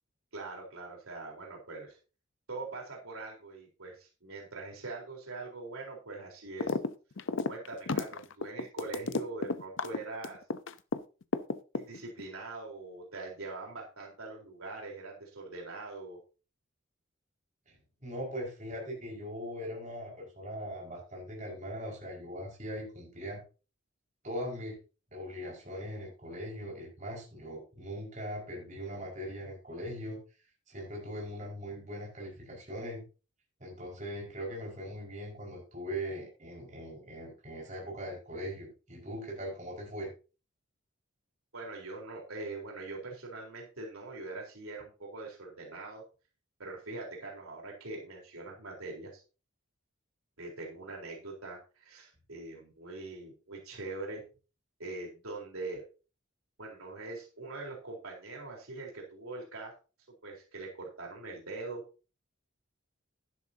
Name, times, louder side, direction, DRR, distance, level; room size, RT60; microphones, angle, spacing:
voice 1, 0.3-2.0 2.5-6.8 7.5-10.4 11.7-16.2 41.5-46.0 46.6-49.2 50.4-54.2 54.8-55.8 56.6-59.7 60.2-61.8, right 3 dB, 90° right, 0 dB, 4.1 m, -42 dB
sound 1, 6.6-6.9 7.2-11.0 11.3-12.2, left 3 dB, 65° left, 0.7 m, -32 dB
voice 2, 18.0-23.4 24.2-24.8 25.1-30.2 30.7-33.0 33.6-40.1, equal, 35° right, -2 dB, 5.2 m, -40 dB
12.0 x 11.0 x 2.8 m, 0.34 s
head